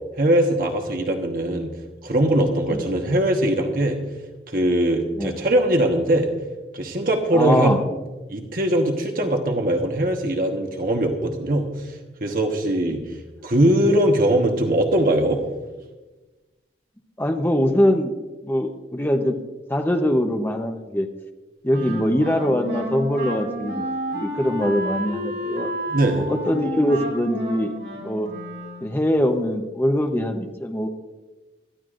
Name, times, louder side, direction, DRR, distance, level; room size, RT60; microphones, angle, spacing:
voice 1, 0.2-1.7 2.0-4.0 4.5-6.3 6.7-7.7 8.3-11.9 12.2-13.0 13.4-15.4 25.9-26.2, right 1 dB, 50° right, 3 dB, 1.3 m, -21 dB
voice 2, 7.3-7.8 9.2-9.3 17.2-18.1 18.4-19.4 19.7-21.1 21.6-23.8 24.1-25.7 26.3-27.7 28.0-28.3 28.8-30.9, equal, 10° left, 3 dB, 0.8 m, -22 dB
Wind instrument woodwind instrument, 21.7-29.1, equal, 70° right, 5.3 m, -31 dB
21.5 x 14.0 x 2.5 m, 1.2 s
head